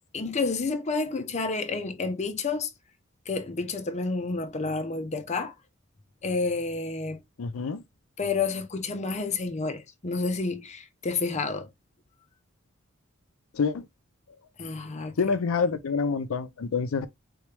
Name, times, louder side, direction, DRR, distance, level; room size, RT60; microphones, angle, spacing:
voice 1, 0.1-2.7 3.3-5.5 6.2-7.2 8.2-11.7 14.6-15.1, left 4 dB, 35° left, 0.6 m, -30 dB
voice 2, 7.4-7.8 13.6-13.8 15.2-17.1, left 5 dB, 90° left, 0.5 m, -27 dB
3.8 x 3.1 x 3.3 m
head